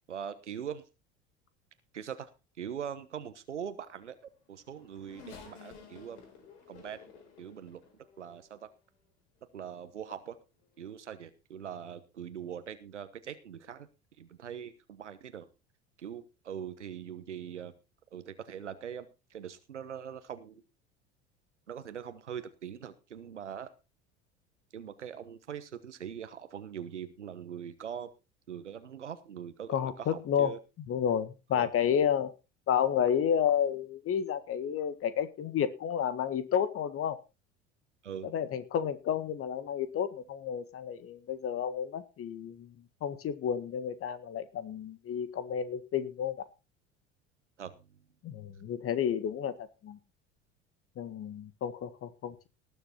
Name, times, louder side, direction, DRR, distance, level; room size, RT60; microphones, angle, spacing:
voice 1, 0.1-0.8 1.9-2.3 2.6-4.1 4.5-6.2 6.7-7.0 7.4-7.8 8.2-8.7 9.5-10.4 10.8-13.9 14.2-15.5 16.0-17.7 18.1-20.5 21.7-23.7 24.7-28.1 28.5-30.6 31.5-31.7 38.0-38.3 47.6-47.9, right 8 dB, 80° right, 11 dB, 1.2 m, -42 dB
Race car auto racing / Accelerating revving vroom, 4.1-8.7 9.4-9.5 10.6-10.8, left 5 dB, 65° left, 4.4 m, -53 dB
voice 2, 29.7-30.6 30.9-32.3 32.7-37.2 38.3-42.7 43.0-46.4 48.2-50.0 51.0-52.5, left 8 dB, 40° left, 13 dB, 1.8 m, -31 dB
19.0 x 7.1 x 4.3 m, 0.29 s
figure-of-eight pair, 70°, 35 cm